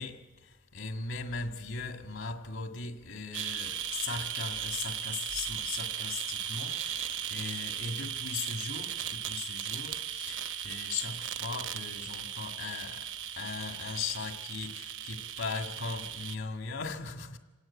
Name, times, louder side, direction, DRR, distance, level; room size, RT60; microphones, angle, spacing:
voice 1, 0.0-13.1 13.4-17.4, left 4 dB, 70° left, 1.9 m, -38 dB
sound 1, 3.3-16.4, right 9 dB, 70° right, 0.9 m, -37 dB
26.5 x 17.5 x 8.4 m
head